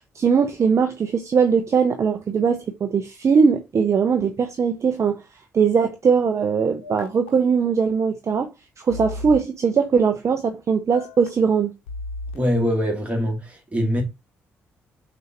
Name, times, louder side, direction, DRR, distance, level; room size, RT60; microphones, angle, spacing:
voice 1, 0.1-5.1 5.5-8.5 8.8-11.7, right 6 dB, 45° right, 0.6 m, -20 dB
sound 1, 6.8-7.3 8.9-9.4 10.9-11.3 11.9-12.4, left 2 dB, 85° left, 0.8 m, -34 dB
voice 2, 12.3-14.0, equal, 20° right, 2.0 m, -23 dB
6.3 x 2.6 x 2.9 m
figure-of-eight pair, 40°, 7 cm